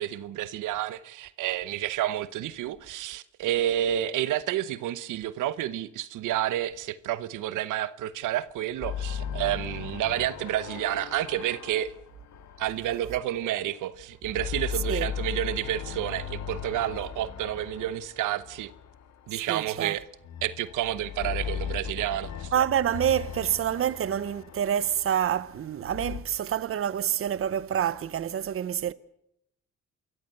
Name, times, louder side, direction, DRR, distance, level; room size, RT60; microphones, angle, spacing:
voice 1, 0.0-11.9 12.6-18.7 19.3-20.0 20.4-22.5, right 12 dB, 85° right, 1.0 m, -30 dB
sound 1, 8.8-13.8 14.1-19.4 20.2-26.2, left 8 dB, 65° left, 1.7 m, -38 dB
voice 2, 19.5-20.0 22.5-28.9, right 10 dB, 45° right, 0.8 m, -27 dB
27.5 x 14.5 x 8.0 m
cardioid pair, 90°, 30 cm